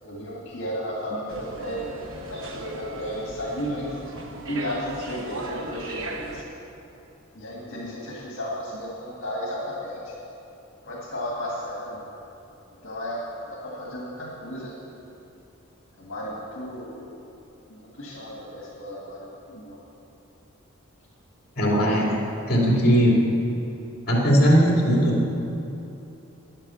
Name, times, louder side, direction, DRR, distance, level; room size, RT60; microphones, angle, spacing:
voice 1, 0.0-2.0 2.3-4.1 4.4-6.5 7.3-10.1 10.8-12.1 12.8-14.8 16.0-17.1 17.7-19.8, equal, 65° left, -5 dB, 1.9 m, -34 dB
sound 1, 1.3-6.4, right 2 dB, 70° right, 1.0 m, -36 dB
voice 2, 21.6-22.1 22.5-23.2 24.1-25.2, equal, 45° left, -3 dB, 2.5 m, -19 dB
10.0 x 8.9 x 6.9 m, 2.9 s
head